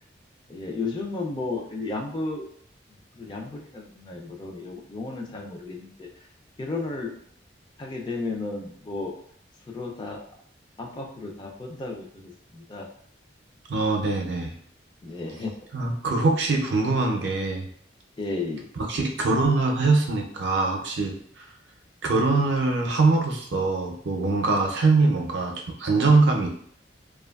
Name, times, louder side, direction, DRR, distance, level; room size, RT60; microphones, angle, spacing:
voice 1, 0.5-2.5 3.2-6.1 6.6-7.1 7.8-9.1 9.7-10.2 10.8-12.9 15.0-15.5 18.2-18.7, left 3 dB, 25° left, 0 dB, 0.3 m, -33 dB
voice 2, 13.7-14.5 15.7-17.7 18.8-21.4 22.0-25.5 25.8-26.5, right 3 dB, 70° right, 1 dB, 0.5 m, -23 dB
2.8 x 2.3 x 2.2 m, 0.63 s
head